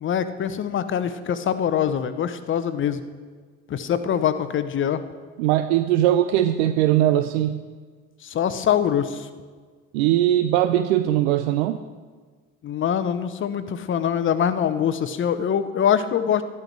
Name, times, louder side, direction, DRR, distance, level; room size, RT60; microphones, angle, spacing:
voice 1, 0.0-3.0 3.7-5.0 8.2-9.3 12.6-16.4, left 8 dB, 35° left, 12 dB, 0.9 m, -23 dB
voice 2, 5.4-7.6 9.9-11.8, right 12 dB, 60° right, 11 dB, 0.6 m, -20 dB
13.0 x 11.5 x 4.7 m, 1.5 s
figure-of-eight pair, 60°, 37 cm